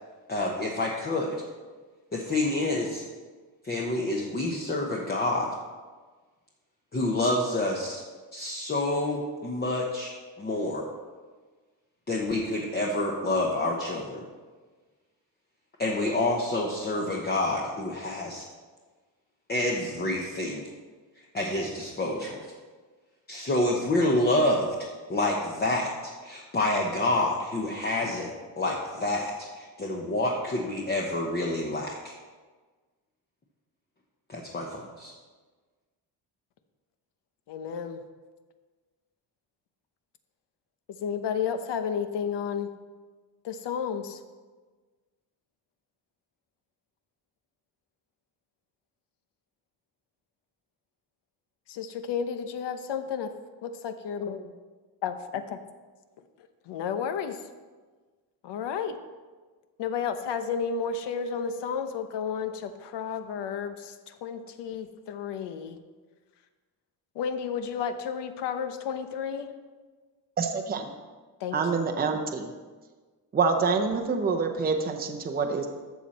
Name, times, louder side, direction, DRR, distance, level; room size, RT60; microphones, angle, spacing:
voice 1, 0.3-1.4 2.1-3.0 3.6-5.5 6.9-8.0 8.3-10.8 12.1-14.2 15.8-18.5 19.5-20.6 21.3-22.5 23.3-32.1 34.3-35.1, left 2 dB, 25° left, -1 dB, 1.0 m, -28 dB
voice 2, 37.5-38.0 40.9-42.7 43.4-44.2 51.7-53.3 53.6-54.4 55.0-55.6 56.7-57.4 58.4-59.0 59.8-65.8 67.1-69.5 71.4-71.9, left 7 dB, 75° left, 9 dB, 0.9 m, -32 dB
voice 3, 70.4-70.9 71.5-72.5 73.3-75.7, right 5 dB, 20° right, 4 dB, 0.7 m, -26 dB
12.5 x 7.4 x 4.2 m, 1.4 s
cardioid pair, 165°, 42 cm